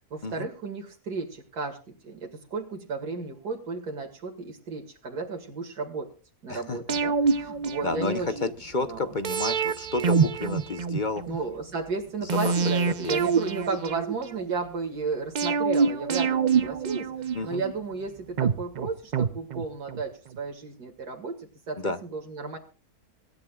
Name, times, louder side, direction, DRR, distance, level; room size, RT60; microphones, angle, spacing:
voice 1, 0.1-6.1 6.4-9.2 11.3-22.6, right 4 dB, 85° right, 2 dB, 2.5 m, -34 dB
voice 2, 6.5-7.0 7.8-11.2 12.2-12.5 12.9-13.2 17.3-17.6 21.8-22.0, left 3 dB, 40° left, 10 dB, 0.8 m, -31 dB
sound 1, 6.9-8.5 9.2-11.4 12.3-14.5 15.4-17.7 18.4-20.0 20.3-20.4, right 5 dB, 55° right, 0.5 m, -26 dB
24.0 x 11.0 x 2.3 m, 0.35 s
omnidirectional pair, 1.7 m